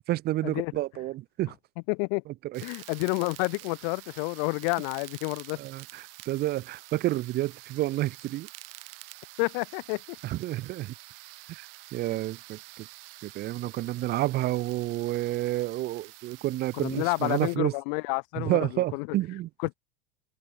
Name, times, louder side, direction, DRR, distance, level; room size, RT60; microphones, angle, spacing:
voice 1, 0.1-1.5 2.5-2.6 5.6-8.5 10.2-10.9 11.5-11.7 11.9-12.9 13.2-17.7 18.4-19.5, right 16 dB, 35° right, 0.5 m, -30 dB
voice 2, 1.9-2.2 2.6-5.6 9.4-10.0 16.7-19.1 19.6-19.7, left 39 dB, 60° left, 1.3 m, -29 dB
sound 1, 2.5-17.6, right 20 dB, 70° right, 1.7 m, -48 dB
hypercardioid pair, 105°, 30 cm